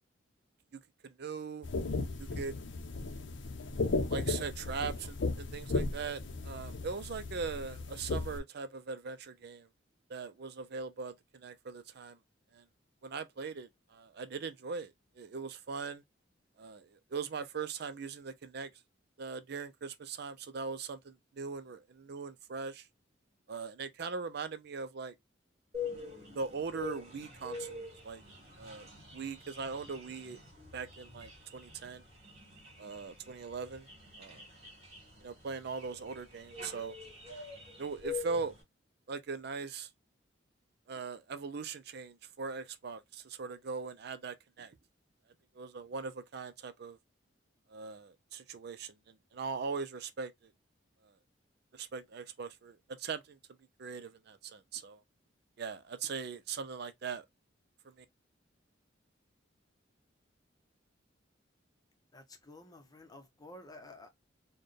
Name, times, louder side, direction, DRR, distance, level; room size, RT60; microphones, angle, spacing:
voice 1, 0.7-1.7 2.2-2.5 4.1-9.7 10.1-12.2 12.5-12.6 13.0-16.0 16.6-18.7 19.2-22.9 23.5-25.1 26.4-28.2 28.6-28.9 29.1-30.4 30.7-32.0 32.8-33.9 34.2-34.4 35.2-36.9 37.8-38.5 39.1-39.9 40.9-44.8 45.5-47.0 47.7-50.3 51.0-51.1 51.7-53.4 53.8-55.0 55.6-57.2 57.8-58.0, right 5 dB, 55° right, 0.5 m, -40 dB
sound 1, 1.6-8.4, left 3 dB, 65° left, 0.6 m, -36 dB
sound 2, 25.7-38.6, left 4 dB, 35° right, 2.1 m, -45 dB
voice 2, 62.1-64.1, left 2 dB, 20° left, 0.8 m, -52 dB
4.2 x 2.2 x 3.1 m
head